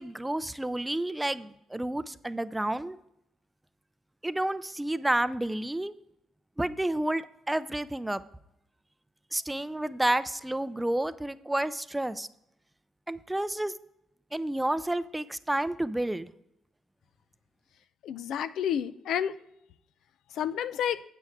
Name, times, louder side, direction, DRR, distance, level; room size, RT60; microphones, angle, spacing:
voice 1, 0.0-3.0 4.2-5.9 6.6-8.2 9.3-12.3 13.1-13.7 14.3-16.3, right 1 dB, 10° right, 14 dB, 0.4 m, -30 dB
voice 2, 18.0-19.4 20.3-21.0, left 9 dB, 75° left, 15 dB, 0.4 m, -30 dB
9.6 x 8.4 x 3.6 m, 0.81 s
cardioid pair, 90°, 0 cm